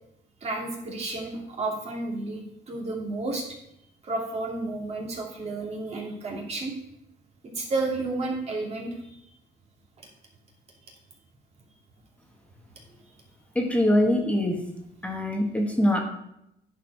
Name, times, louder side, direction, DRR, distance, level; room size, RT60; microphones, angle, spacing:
voice 1, 0.4-3.5 4.0-6.8 7.4-9.1, right 2 dB, 40° right, -1 dB, 2.5 m, -31 dB
voice 2, 13.5-14.6 15.0-16.0, left 1 dB, 5° left, 2 dB, 1.3 m, -23 dB
10.0 x 4.8 x 4.7 m, 0.80 s
cardioid pair, 110°, 17 cm